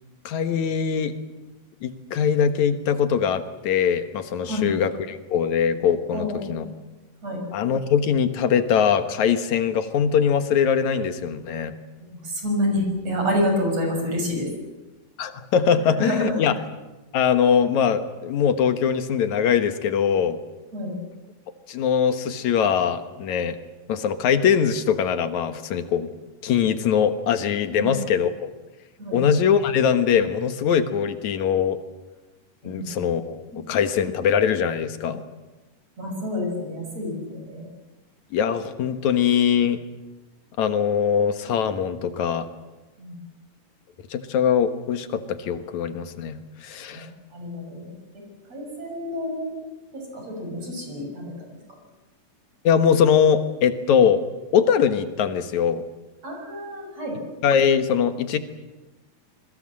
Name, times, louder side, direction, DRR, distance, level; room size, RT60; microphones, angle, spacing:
voice 1, 0.2-1.1 1.8-6.7 7.5-11.7 15.2-16.5 17.1-20.4 21.7-23.6 23.9-26.1 26.4-28.5 29.1-31.8 32.6-35.2 38.3-39.8 40.6-42.5 44.1-47.1 52.6-54.2 54.5-55.8 57.4-58.4, left 7 dB, 65° left, 9 dB, 2.6 m, -22 dB
voice 2, 4.4-4.7 6.1-6.6 7.2-7.4 12.1-14.5 15.7-16.4 20.7-20.9 27.7-28.0 29.0-29.2 32.6-33.0 33.5-33.6 36.0-37.7 43.0-43.2 46.9-49.6 49.9-51.5 56.2-57.2, left 1 dB, 50° right, 2 dB, 7.6 m, -29 dB
26.5 x 22.0 x 7.7 m, 1.1 s
omnidirectional pair, 3.8 m